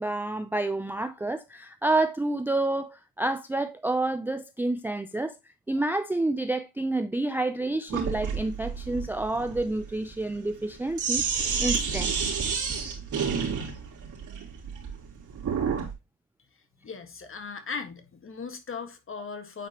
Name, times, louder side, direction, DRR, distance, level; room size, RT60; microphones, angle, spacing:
voice 1, 0.0-5.3 5.7-11.2 11.6-12.1, right 2 dB, 5° right, 0.5 m, -29 dB
Sink (filling or washing), 7.9-15.9, right 6 dB, 55° right, 3.2 m, -30 dB
voice 2, 16.8-19.7, left 5 dB, 35° left, 1.7 m, -38 dB
8.9 x 4.5 x 2.9 m
cardioid pair, 85°, 36 cm